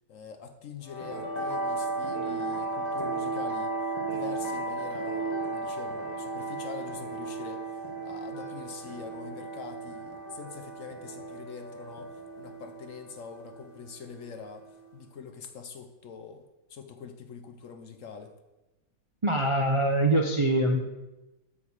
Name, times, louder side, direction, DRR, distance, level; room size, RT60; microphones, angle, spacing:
voice 1, 0.1-18.4, left 6 dB, 60° left, 7 dB, 0.9 m, -44 dB
sound 1, 0.9-15.0, right 3 dB, 25° left, 1.5 m, -35 dB
voice 2, 19.2-20.9, right 1 dB, 50° right, 2 dB, 0.3 m, -24 dB
8.5 x 4.9 x 7.2 m, 1.0 s
omnidirectional pair, 1.8 m